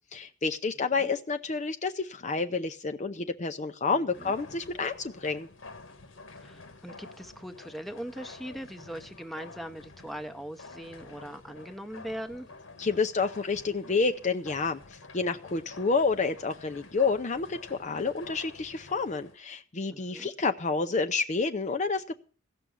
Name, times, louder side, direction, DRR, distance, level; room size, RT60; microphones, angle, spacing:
voice 1, 0.1-5.5 12.8-22.1, left 4 dB, 35° left, 6 dB, 0.6 m, -29 dB
voice 2, 3.8-4.3 6.4-12.5 19.9-20.3, equal, ahead, 7 dB, 0.9 m, -41 dB
sound 1, 4.1-19.4, left 3 dB, 80° left, 1.5 m, -49 dB
16.0 x 6.2 x 8.0 m, 0.42 s
head